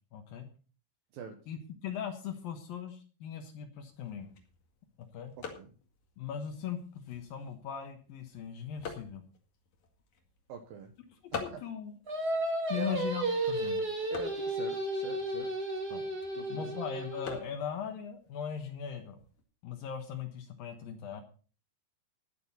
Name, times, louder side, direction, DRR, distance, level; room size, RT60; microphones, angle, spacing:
voice 1, 0.1-0.5 1.5-4.3 5.0-5.3 6.2-9.2 11.4-11.9 12.7-13.8 15.9-16.0 16.5-19.2 19.6-21.2, left 8 dB, 75° left, 5 dB, 2.1 m, -39 dB
sound 1, 3.9-19.4, left 5 dB, 50° left, 2.4 m, -49 dB
voice 2, 10.5-10.9 11.3-11.6 12.7-13.0 14.1-15.5 16.3-16.7, right 6 dB, 80° right, 5 dB, 2.0 m, -44 dB
Singing, 12.1-17.4, right 1 dB, 45° right, 1.3 m, -33 dB
19.5 x 7.9 x 4.2 m, 0.38 s
omnidirectional pair, 6.0 m